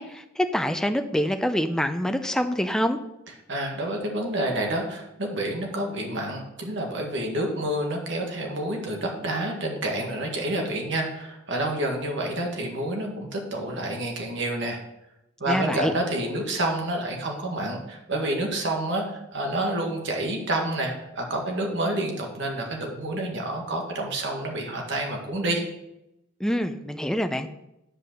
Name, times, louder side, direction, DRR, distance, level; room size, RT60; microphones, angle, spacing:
voice 1, 0.0-3.0 15.5-15.9 26.4-27.5, equal, 5° left, 7 dB, 0.6 m, -26 dB
voice 2, 3.5-14.8 15.4-25.6, right 1 dB, 60° right, 1 dB, 1.8 m, -28 dB
9.8 x 5.4 x 6.2 m, 0.87 s
head